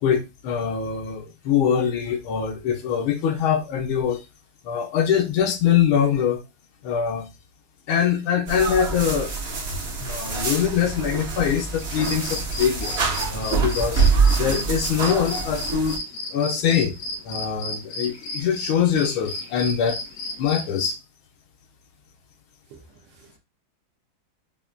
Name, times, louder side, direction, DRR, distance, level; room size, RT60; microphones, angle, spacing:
voice 1, 0.0-4.2 4.6-6.4 6.8-7.3 7.9-9.3 10.0-13.0 13.3-14.0 14.3-16.0 16.3-16.9 17.2-20.0 20.4-21.0, left 8 dB, 85° left, 1.5 m, -23 dB
sound 1, 8.5-16.0, right 4 dB, 50° right, 0.8 m, -25 dB
sound 2, 11.8-20.9, left 2 dB, 60° left, 0.8 m, -34 dB
voice 2, 22.7-23.4, right 5 dB, 70° right, 1.3 m, -51 dB
5.6 x 2.2 x 2.4 m
omnidirectional pair, 2.3 m